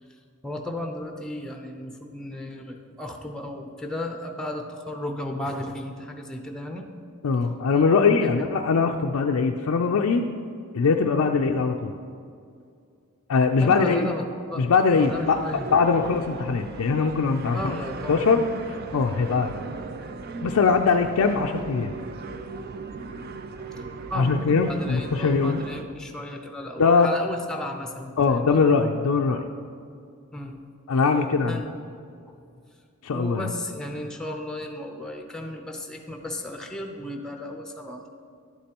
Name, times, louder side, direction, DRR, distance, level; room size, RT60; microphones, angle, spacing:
voice 1, 0.4-6.9 8.2-8.5 13.6-14.7 14.9-15.7 17.5-18.3 24.1-28.6 30.3-30.6 31.5-31.7 32.3-32.4 33.1-38.1, left 1 dB, 5° left, 3 dB, 0.6 m, -34 dB
voice 2, 7.2-10.3 10.7-11.9 13.3-14.1 14.6-15.4 15.7-17.7 18.1-18.4 18.9-19.5 20.4-21.9 24.1-25.6 26.8-27.1 28.2-29.4 30.9-31.6 33.0-33.5, left 5 dB, 80° left, 3 dB, 0.4 m, -21 dB
sound 1, 15.0-25.8, right 3 dB, 45° right, 0.4 m, -38 dB
11.5 x 8.4 x 2.9 m, 2.3 s
head